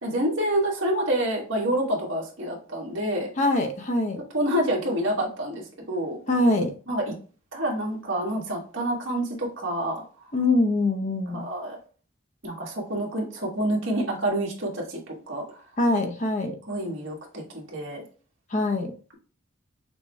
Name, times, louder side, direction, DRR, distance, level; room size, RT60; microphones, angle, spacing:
voice 1, 0.0-3.3 4.3-6.2 6.9-7.1 7.5-10.0 11.3-11.8 12.4-15.0 15.3-15.6 16.7-18.0, right 1 dB, 60° right, -1 dB, 1.5 m, -27 dB
voice 2, 3.4-4.2 6.3-6.7 10.3-11.5 15.8-16.6 18.5-18.9, left 2 dB, 35° left, 4 dB, 0.6 m, -23 dB
6.1 x 2.2 x 3.1 m, 0.38 s
head